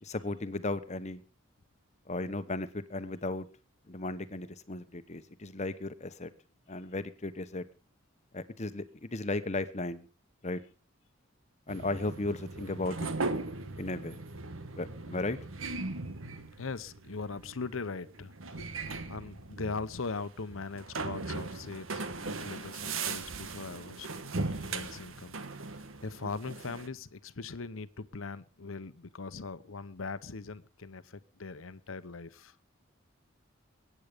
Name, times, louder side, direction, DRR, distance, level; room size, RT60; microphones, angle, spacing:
voice 1, 0.0-1.2 2.1-3.5 3.9-6.3 6.7-7.6 8.3-10.1 10.4-10.6 11.7-13.1 13.8-14.2 14.8-15.4, left 2 dB, 35° left, 1.1 m, -35 dB
sound 1, 11.7-26.9, right 3 dB, 85° right, 1.4 m, -39 dB
voice 2, 16.6-18.8 19.1-24.1 24.4-25.4 25.7-32.5, left 4 dB, 80° left, 0.9 m, -40 dB
21.5 x 9.5 x 5.1 m
head